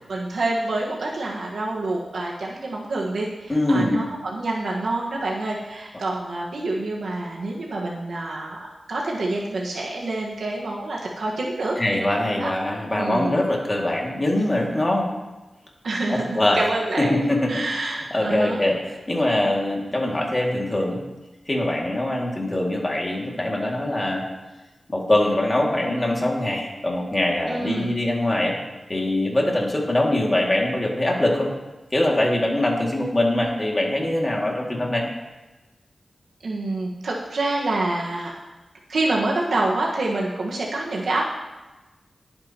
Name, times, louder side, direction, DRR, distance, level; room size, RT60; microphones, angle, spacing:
voice 1, 0.1-8.6 8.9-11.8 12.4-12.5 13.0-13.3 15.8-17.1 17.5-18.6 27.5-27.9 36.4-38.3 38.9-41.2, right 2 dB, 80° right, -3 dB, 1.5 m, -27 dB
voice 2, 3.5-4.0 11.8-15.1 16.1-16.6 17.0-17.6 18.1-18.8 19.1-21.0 21.5-24.2 24.9-28.6 28.9-31.5 31.9-35.0, left 1 dB, 20° left, -2 dB, 2.3 m, -23 dB
19.5 x 8.7 x 3.0 m, 1.1 s
wide cardioid pair, 140°, 0 cm